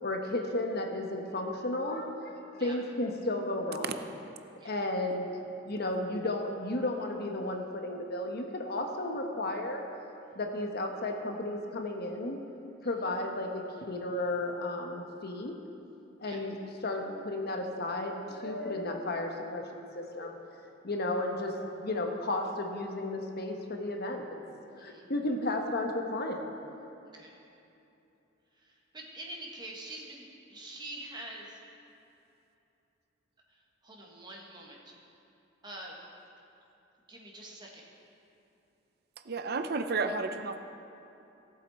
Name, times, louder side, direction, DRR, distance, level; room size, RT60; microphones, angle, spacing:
voice 1, 0.0-3.9 4.6-5.3 5.6-9.8 10.3-12.4 12.8-15.6 16.2-16.6 16.8-20.4 20.8-24.2 24.5-26.4, left 2 dB, 55° left, 3 dB, 1.1 m, -33 dB
voice 2, 28.6-30.2 30.5-31.6 33.8-34.9 35.6-36.1 37.1-37.8, right 1 dB, 25° right, -2 dB, 1.6 m, -45 dB
voice 3, 39.2-40.6, right 4 dB, 55° right, 8 dB, 0.6 m, -32 dB
17.0 x 7.9 x 4.2 m, 2.8 s
head